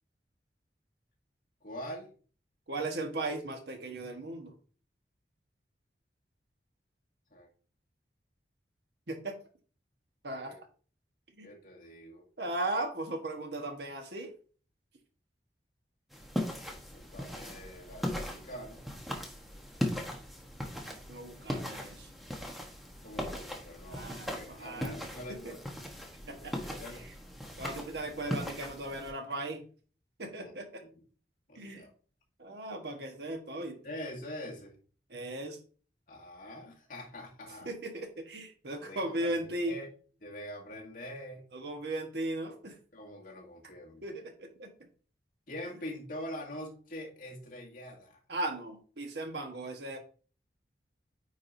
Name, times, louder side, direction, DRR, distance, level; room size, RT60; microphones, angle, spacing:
voice 1, 1.6-2.1 7.3-7.5 10.5-10.6 11.4-12.3 16.9-18.9 23.0-25.6 26.3-27.1 30.4-30.5 30.9-31.0 31.5-31.9 33.8-34.7 36.1-37.7 38.8-39.9 40.2-41.5 42.9-44.1 45.5-48.2, equal, 50° left, -2 dB, 2.0 m, -44 dB
voice 2, 2.7-4.5 9.1-9.4 10.2-10.7 11.4-11.5 12.4-14.3 21.1-22.1 23.9-24.9 25.4-25.6 26.3-26.7 27.6-29.6 30.2-30.8 31.5-31.8 32.4-33.8 35.1-35.6 37.6-39.8 41.5-42.7 44.0-44.7 48.3-50.0, right 2 dB, 70° right, 4 dB, 1.3 m, -37 dB
sound 1, 16.1-29.1, equal, ahead, 1.1 m, -39 dB
9.4 x 4.8 x 2.7 m, 0.40 s
head